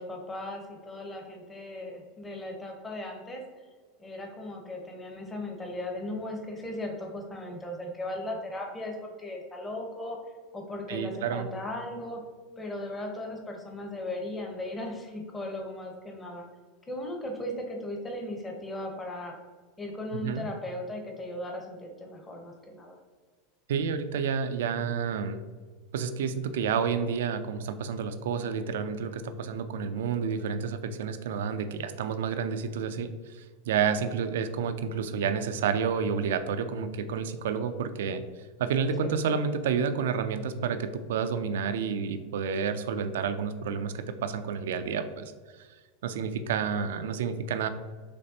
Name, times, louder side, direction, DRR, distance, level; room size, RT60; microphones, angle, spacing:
voice 1, 0.0-3.4 4.0-10.2 10.5-12.2 12.6-16.5 16.9-19.3 19.8-23.0 39.0-39.4, left 1 dB, 15° left, 1 dB, 1.0 m, -37 dB
voice 2, 10.9-11.5 20.1-20.4 23.7-25.4 25.9-38.2 38.6-45.3 46.0-47.7, right 6 dB, 80° right, 10 dB, 0.4 m, -30 dB
5.3 x 3.3 x 2.8 m, 1.5 s
hypercardioid pair, 105°, 0 cm